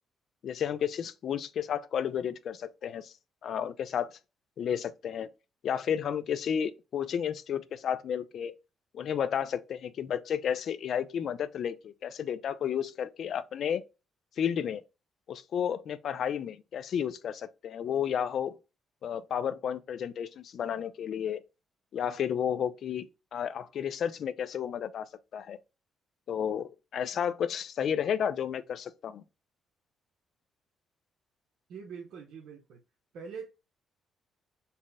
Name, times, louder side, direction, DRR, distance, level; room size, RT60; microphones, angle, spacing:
voice 1, 0.4-3.1 3.4-4.1 4.6-5.3 5.6-8.5 8.9-13.8 14.4-14.8 15.3-18.6 19.0-21.4 21.9-23.1 23.3-25.6 26.3-29.2, left 8 dB, 65° left, 0.4 m, -32 dB
voice 2, 31.7-32.8 33.1-33.5, right 6 dB, 80° right, 0.7 m, -43 dB
4.1 x 2.0 x 3.4 m
cardioid pair, 90°, 0 cm